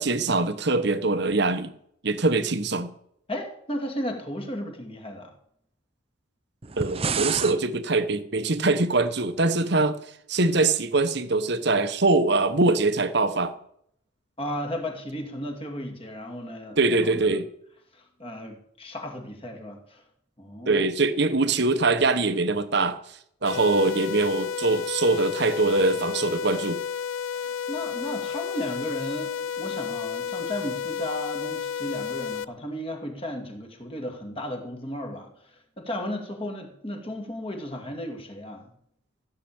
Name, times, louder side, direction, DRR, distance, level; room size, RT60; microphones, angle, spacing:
voice 1, 0.0-1.7 2.0-2.9 6.8-10.0 10.3-13.5 16.8-17.5 20.7-23.0 23.4-26.8, right 3 dB, 55° right, 1.1 m, -23 dB
voice 2, 3.3-5.3 14.4-17.4 17.9-20.0 20.4-20.8 27.3-38.6, equal, 25° left, 2.5 m, -35 dB
sound 1, 6.6-7.6, right 6 dB, 30° right, 0.6 m, -28 dB
sound 2, 23.4-32.4, left 8 dB, 85° left, 0.5 m, -32 dB
15.0 x 6.8 x 8.8 m
head